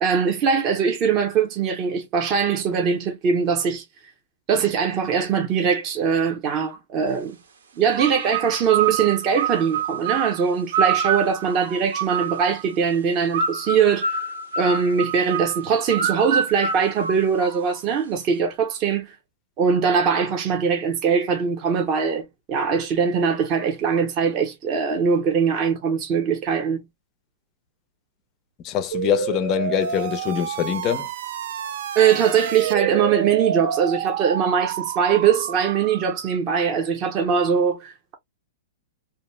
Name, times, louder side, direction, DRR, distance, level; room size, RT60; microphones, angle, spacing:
voice 1, 0.0-3.8 4.5-7.4 7.8-14.3 14.6-19.1 19.6-26.8 32.0-38.1, right 6 dB, 25° right, 0.7 m, -21 dB
sound 1, 7.9-12.7 13.3-17.8, right 6 dB, 80° right, 0.8 m, -27 dB
voice 2, 28.6-31.1, left 10 dB, 25° left, 0.5 m, -24 dB
sound 2, 28.9-36.4, right 9 dB, 55° right, 0.3 m, -29 dB
2.7 x 2.0 x 3.1 m
hypercardioid pair, 165°, 0 cm